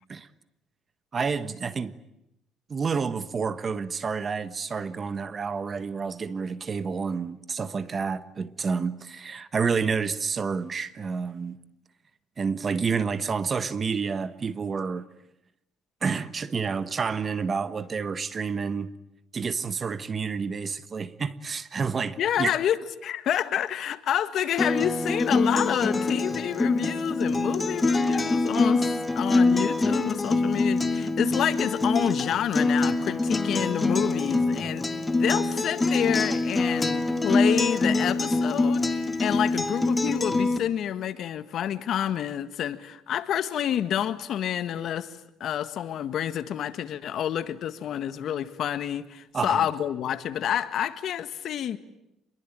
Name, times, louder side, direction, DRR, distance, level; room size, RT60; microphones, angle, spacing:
voice 1, 1.1-1.9 2.7-11.6 12.4-15.1 16.0-18.9 19.3-22.5 34.6-34.7 49.3-49.7, right 5 dB, 35° right, 1.3 m, -29 dB
voice 2, 22.2-34.8 35.2-51.8, left 10 dB, 60° left, 1.6 m, -28 dB
Acoustic guitar, 24.6-40.6, left 3 dB, 20° left, 1.9 m, -25 dB
27.0 x 22.0 x 9.0 m
cardioid pair, 100°, 0 cm